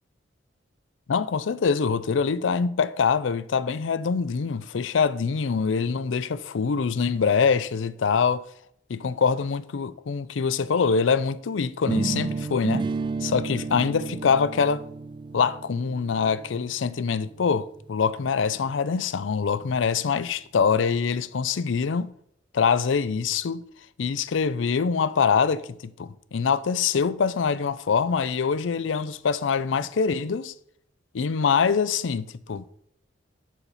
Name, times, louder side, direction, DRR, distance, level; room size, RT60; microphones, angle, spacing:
voice 1, 1.1-8.5 8.9-12.9 13.2-14.8 15.3-22.1 22.5-23.6 24.0-30.5 31.1-32.6, left 5 dB, 90° left, 0.5 m, -24 dB
sound 1, 11.9-17.8, right 4 dB, 25° right, 0.3 m, -32 dB
9.8 x 4.2 x 5.6 m
head